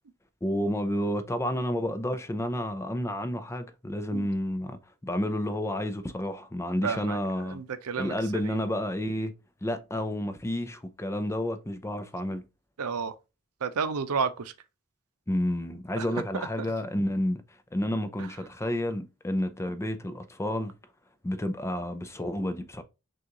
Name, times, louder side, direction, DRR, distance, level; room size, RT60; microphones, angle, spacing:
voice 1, 0.4-7.6 8.0-9.3 9.6-12.4 15.3-17.4 17.7-20.7 21.2-22.8, left 1 dB, 10° left, 0.5 m, -30 dB
voice 2, 6.8-7.2 7.5-8.6 12.8-13.1 13.6-14.5 16.0-16.1 18.2-18.3, right 5 dB, 80° right, 0.6 m, -31 dB
6.4 x 2.4 x 2.9 m
head